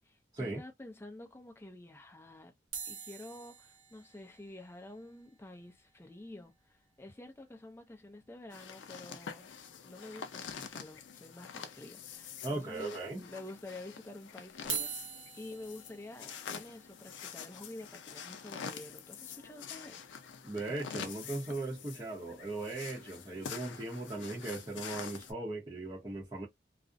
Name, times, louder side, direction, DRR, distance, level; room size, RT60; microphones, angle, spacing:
voice 1, 0.0-2.5 2.9-9.5 9.8-20.0, left 2 dB, 15° left, 0.4 m, -49 dB
sound 1, 2.7-7.1 7.4-7.5 7.6-7.8 8.2-8.3 9.7-9.8 10.5-11.0 11.5-11.6 12.4-12.5 14.5-20.6 21.2-21.4, right 6 dB, 90° right, 0.8 m, -46 dB
sound 2, 8.5-25.3, left 6 dB, 85° left, 0.5 m, -46 dB
voice 2, 12.4-13.3 20.4-26.5, right 2 dB, 25° right, 0.7 m, -38 dB
2.4 x 2.0 x 2.5 m
head